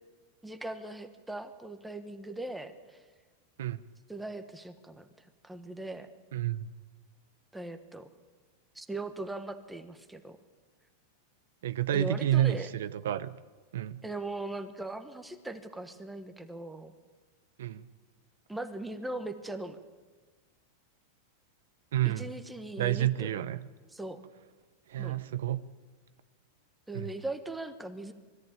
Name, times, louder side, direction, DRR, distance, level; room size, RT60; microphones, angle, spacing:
voice 1, 0.4-3.0 4.1-6.1 7.5-8.1 8.7-10.4 11.9-12.7 14.0-16.9 18.5-19.8 22.0-23.5 23.9-24.2 25.0-25.2 26.9-28.1, right 2 dB, 5° right, 8 dB, 1.3 m, -39 dB
voice 2, 6.3-6.7 11.6-13.4 13.7-14.0 17.6-17.9 21.9-22.3 22.8-23.6 24.9-25.6 26.9-27.1, right 12 dB, 85° right, 14 dB, 0.7 m, -29 dB
21.5 x 14.0 x 8.8 m, 1.4 s
supercardioid pair, 145°, 0 cm